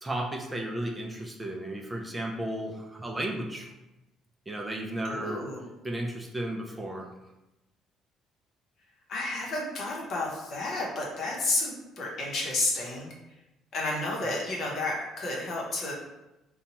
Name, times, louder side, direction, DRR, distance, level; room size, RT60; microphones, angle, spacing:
voice 1, 0.0-3.7 4.5-5.4 5.8-7.1, right 1 dB, 15° right, 0 dB, 0.4 m, -34 dB
voice 2, 5.0-5.7 9.1-13.1 13.7-15.9, left 2 dB, 60° left, -2 dB, 0.8 m, -31 dB
2.8 x 2.2 x 2.8 m, 0.97 s
cardioid pair, 95°, 0 cm